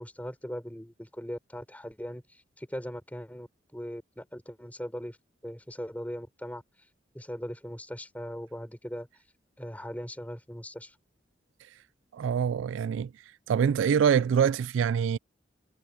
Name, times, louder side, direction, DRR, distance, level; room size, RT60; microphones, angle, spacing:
voice 1, 0.0-5.2 5.4-6.6 7.1-9.1 9.6-10.9, equal, 10° left, 4.9 m, -39 dB
voice 2, 12.1-13.1 13.5-15.2, right 7 dB, 85° right, 0.3 m, -25 dB
head